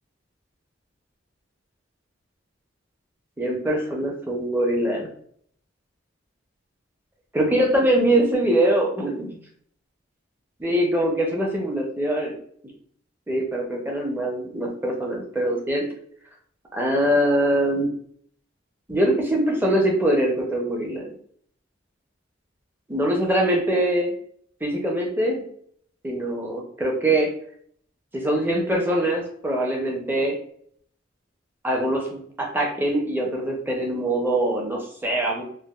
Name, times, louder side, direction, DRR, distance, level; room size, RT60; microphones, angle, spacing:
voice 1, 3.4-5.1 7.3-9.4 10.6-12.3 13.3-15.9 16.7-17.9 18.9-21.1 22.9-24.1 24.6-25.4 26.0-27.3 28.1-30.4 31.6-35.4, right 1 dB, 10° right, 0 dB, 0.5 m, -23 dB
3.3 x 2.3 x 2.3 m, 0.63 s
head